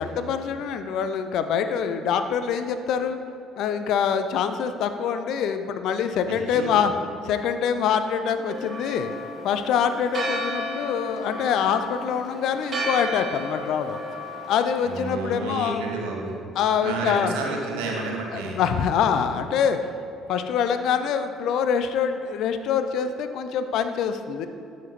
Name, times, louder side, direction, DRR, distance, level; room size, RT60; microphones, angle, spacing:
voice 1, 0.0-3.2 3.6-6.9 7.2-9.1 9.4-14.0 14.5-15.8 16.6-17.3 18.3-19.8 20.3-24.5, left 7 dB, 55° left, 9 dB, 0.4 m, -25 dB
voice 2, 6.3-6.8 14.8-16.3 16.8-18.6, right 3 dB, 65° right, 0 dB, 0.9 m, -31 dB
Church bell, 8.5-15.1, equal, 40° right, 1.5 m, -33 dB
10.5 x 5.1 x 2.9 m, 2.6 s
figure-of-eight pair, 50°, 0 cm